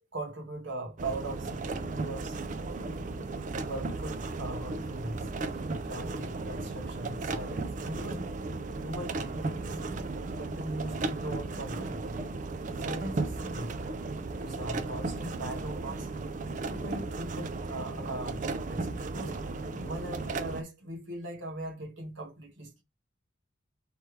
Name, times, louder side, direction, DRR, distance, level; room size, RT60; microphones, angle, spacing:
voice 1, 0.1-2.4 3.6-5.3 5.8-8.3 8.8-9.8 10.4-12.0 12.8-13.8 14.3-16.1 16.7-19.3 19.7-22.8, right 1 dB, 65° right, 1.3 m, -40 dB
sound 1, 1.0-20.6, right 3 dB, 40° right, 0.4 m, -35 dB
3.2 x 3.1 x 4.5 m
head